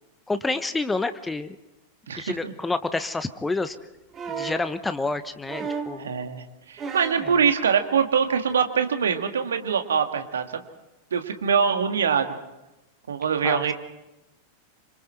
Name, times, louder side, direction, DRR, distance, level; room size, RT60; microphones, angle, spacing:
voice 1, 0.3-1.6 2.2-3.8 4.4-6.1 7.2-7.3 13.4-13.7, left 3 dB, 10° left, 11 dB, 1.0 m, -28 dB
voice 2, 2.1-2.5 6.0-10.6 11.1-12.3 13.1-13.7, right 6 dB, 65° right, 7 dB, 1.8 m, -24 dB
sound 1, 4.1-4.7 5.5-6.0 6.8-7.3 8.5-8.6, right 5 dB, 25° right, 3.0 m, -33 dB
26.5 x 26.5 x 4.5 m, 0.98 s
figure-of-eight pair, 90°, 0 cm